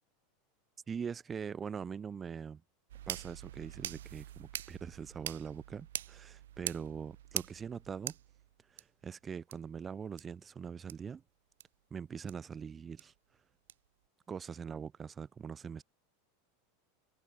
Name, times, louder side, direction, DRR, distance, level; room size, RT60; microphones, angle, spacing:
voice 1, 0.9-2.6 3.1-8.2 8.7-11.2 11.9-13.1 14.3-15.8, right 6 dB, 20° right, 1.0 m, -42 dB
sound 1, 2.9-8.8 9.5-9.6 10.2-10.3 10.9-11.0 11.6-11.7 12.3-12.4 13.0-13.1 13.7-13.8, right 12 dB, 65° right, 0.7 m, -43 dB
open air
figure-of-eight pair, 85°, 0 cm